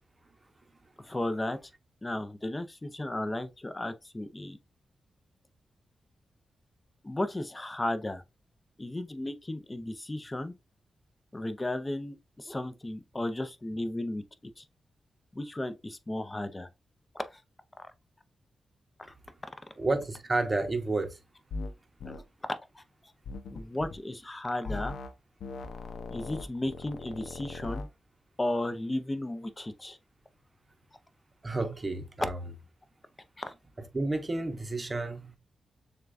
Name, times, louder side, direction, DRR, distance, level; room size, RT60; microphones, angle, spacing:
voice 1, 1.0-1.7 2.0-4.6 7.0-8.2 8.8-10.5 11.3-14.2 14.6-14.7 15.3-16.7 17.1-17.4 17.8-17.9 22.1-22.2 22.7-22.8 23.5-25.0 26.1-27.9 28.4-30.0 33.4-33.5, left 1 dB, 20° left, 0.6 m, -34 dB
voice 2, 19.8-21.2 31.4-32.4 33.9-35.4, right 2 dB, 30° right, 0.8 m, -31 dB
sound 1, 21.5-21.7 22.0-22.2 23.3-24.0 24.7-25.1 25.4-27.9, left 3 dB, 85° left, 0.5 m, -39 dB
6.5 x 2.3 x 2.5 m
cardioid pair, 90°, 0 cm